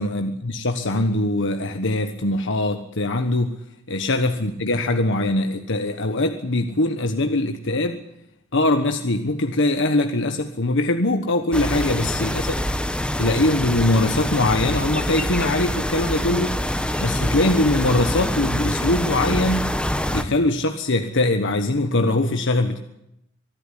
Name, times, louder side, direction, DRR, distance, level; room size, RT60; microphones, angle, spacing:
voice 1, 0.0-3.5 3.9-8.0 8.5-12.5 13.2-16.6 17.0-19.7 20.1-22.8, left 2 dB, 65° left, 7 dB, 1.3 m, -22 dB
sound 1, 11.5-20.2, left 1 dB, 5° left, 1.2 m, -25 dB
24.0 x 12.0 x 9.9 m, 0.81 s
head